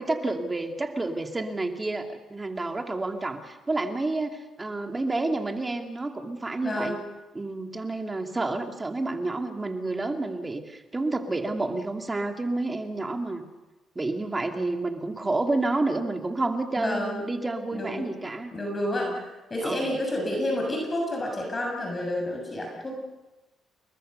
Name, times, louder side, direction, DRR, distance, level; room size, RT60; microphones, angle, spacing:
voice 1, 0.0-7.0 7.3-13.4 14.0-18.5 18.9-19.1 19.6-19.9, right 2 dB, 20° right, 4 dB, 2.6 m, -29 dB
voice 2, 6.6-7.0 16.8-17.2 17.7-18.1 18.5-23.0, left 1 dB, 25° left, 1 dB, 6.8 m, -30 dB
29.0 x 22.0 x 6.8 m, 1.1 s
cardioid pair, 90°, 0 cm